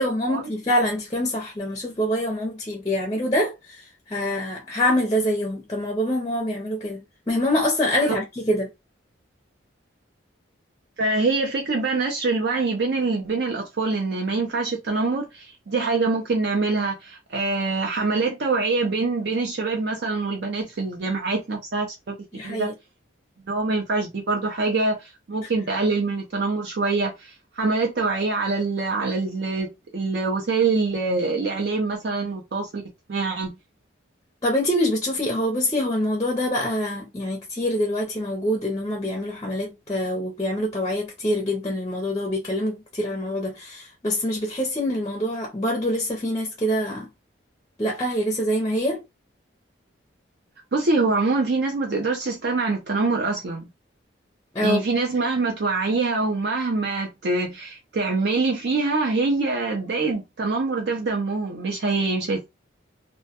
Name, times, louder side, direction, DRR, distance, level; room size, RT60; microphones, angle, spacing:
voice 1, 0.0-8.7 22.3-22.7 34.4-47.1 47.8-49.0 54.5-54.8, left 1 dB, 20° left, 0.5 m, -25 dB
voice 2, 11.0-22.1 22.4-22.7 23.5-32.8 33.1-33.5 50.7-53.7 54.6-62.5, right 3 dB, 55° right, 0.5 m, -24 dB
2.2 x 2.1 x 2.7 m
head